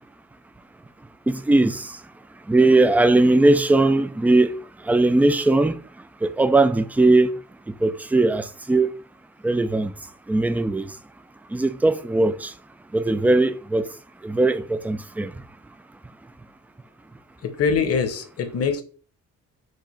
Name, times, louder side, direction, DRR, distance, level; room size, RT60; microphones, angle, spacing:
voice 1, 1.3-1.8 2.5-4.5 4.9-5.7 6.2-7.3 7.8-8.9 9.4-9.9 10.3-10.8 11.5-12.5 12.9-13.8 14.2-15.3, right 2 dB, 5° right, 0.3 m, -19 dB
voice 2, 17.4-18.8, left 5 dB, 50° left, 0.9 m, -23 dB
4.7 x 2.4 x 4.3 m
cardioid pair, 90°, 30 cm